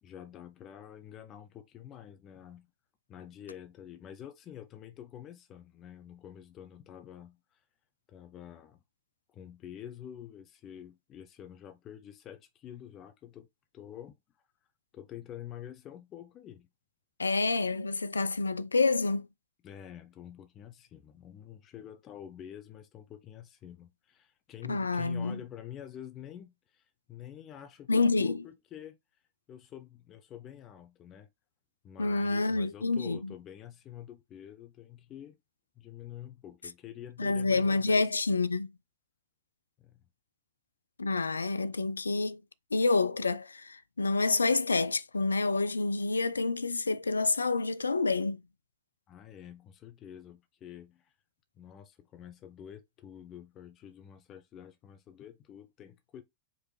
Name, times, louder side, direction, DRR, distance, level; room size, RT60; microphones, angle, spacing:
voice 1, 0.0-2.7 3.1-7.6 8.1-8.8 9.3-13.5 13.7-14.2 14.9-16.7 19.6-26.8 27.1-29.0 29.5-31.3 31.8-35.3 35.8-38.4 39.8-40.0 49.1-51.1 51.6-56.2, left 10 dB, 30° left, 0.7 m, -47 dB
voice 2, 17.2-19.3 24.7-25.4 27.9-28.4 32.0-33.3 37.2-38.7 41.0-42.4 42.7-48.4, left 3 dB, 75° left, 0.3 m, -28 dB
5.0 x 3.0 x 3.3 m
figure-of-eight pair, 90°, 0 cm